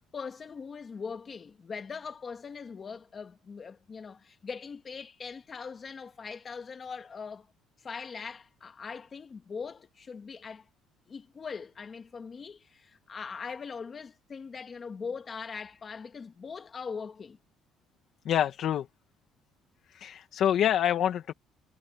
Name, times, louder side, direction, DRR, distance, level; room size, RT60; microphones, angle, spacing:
voice 1, 0.1-7.5 7.8-10.7 11.1-17.4, left 5 dB, 25° left, 1.7 m, -41 dB
voice 2, 18.2-18.9 19.9-21.3, left 10 dB, 50° left, 1.8 m, -26 dB
cardioid pair, 160°, 0 cm